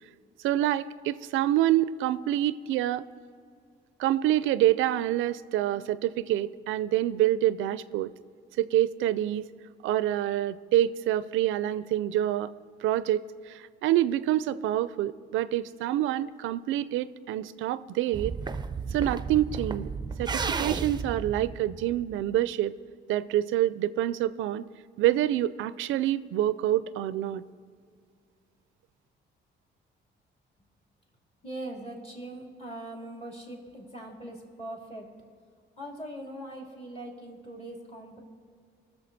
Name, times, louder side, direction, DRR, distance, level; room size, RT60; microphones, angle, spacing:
voice 1, 0.4-3.1 4.0-8.1 8.6-9.5 9.8-12.5 12.8-18.3 18.9-19.9 20.2-22.7 23.1-24.6 25.0-27.4, right 13 dB, 85° right, 16 dB, 0.4 m, -27 dB
sound 1, 18.1-22.4, right 5 dB, 20° right, 0.5 m, -33 dB
voice 2, 31.4-35.1 35.8-38.2, right 1 dB, 30° left, 0 dB, 3.0 m, -41 dB
18.5 x 6.8 x 4.1 m, 2.1 s
cardioid pair, 90°, 20 cm